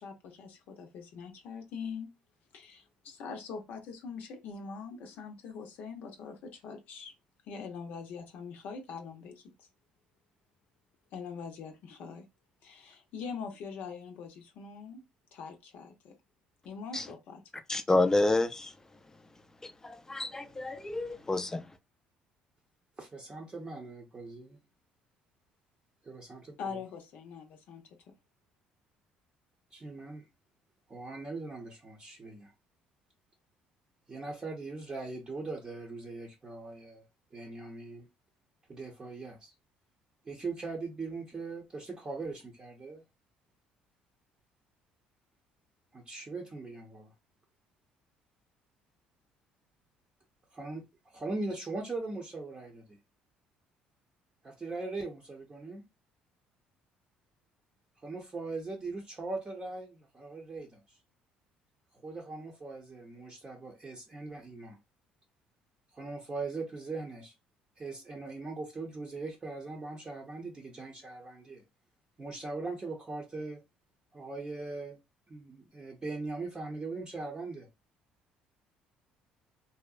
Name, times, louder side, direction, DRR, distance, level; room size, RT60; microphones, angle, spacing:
voice 1, 0.0-2.1 2.5-7.1 7.5-9.7 11.1-12.2 12.6-15.0 15.3-16.1 16.6-17.4 26.6-27.8, left 5 dB, 70° left, 0.5 m, -43 dB
voice 2, 17.7-18.7 19.6-21.7, left 2 dB, 15° left, 0.4 m, -29 dB
voice 3, 23.0-24.6 26.0-26.8 29.7-30.3 30.9-32.5 34.1-37.0 37.3-38.1 38.7-39.5 40.2-43.0 45.9-47.1 50.5-53.0 54.4-55.8 58.0-61.0 61.9-64.8 65.9-67.3 67.8-71.6 72.2-73.6 74.1-75.0 75.3-77.7, right 3 dB, 30° right, 0.7 m, -40 dB
2.7 x 2.1 x 2.3 m
supercardioid pair, 75°, 3 cm